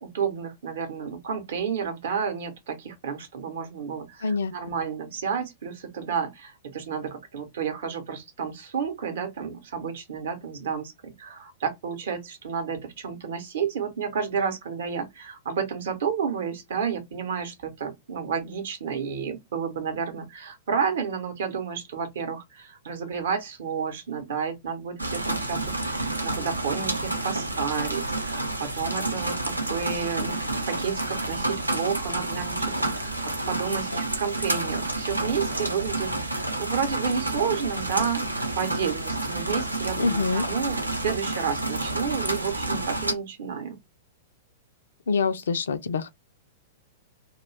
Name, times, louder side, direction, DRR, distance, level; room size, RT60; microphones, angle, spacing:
voice 1, 0.0-30.4 30.7-43.8, right 6 dB, 60° right, 0.7 m, -31 dB
voice 2, 4.2-4.5 40.0-40.4 45.1-46.1, left 4 dB, 65° left, 0.3 m, -25 dB
sound 1, 25.0-43.1, right 2 dB, 85° right, 0.5 m, -29 dB
2.4 x 2.2 x 3.1 m
figure-of-eight pair, 100°, 0 cm